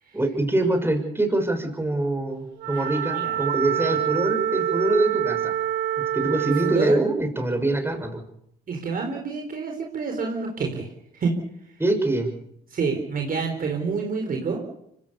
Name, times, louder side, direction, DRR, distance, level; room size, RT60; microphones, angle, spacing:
voice 1, 0.1-5.5 6.1-8.2 11.8-12.3, right 2 dB, 15° right, 5 dB, 6.4 m, -24 dB
Wind instrument woodwind instrument, 2.6-6.9, right 11 dB, 75° right, 3.2 m, -26 dB
voice 2, 6.6-7.0 8.7-10.9 11.2-11.3 12.7-14.6, right 5 dB, 50° right, 2 dB, 4.5 m, -27 dB
24.5 x 16.0 x 6.9 m, 0.73 s
supercardioid pair, 70°, 18 cm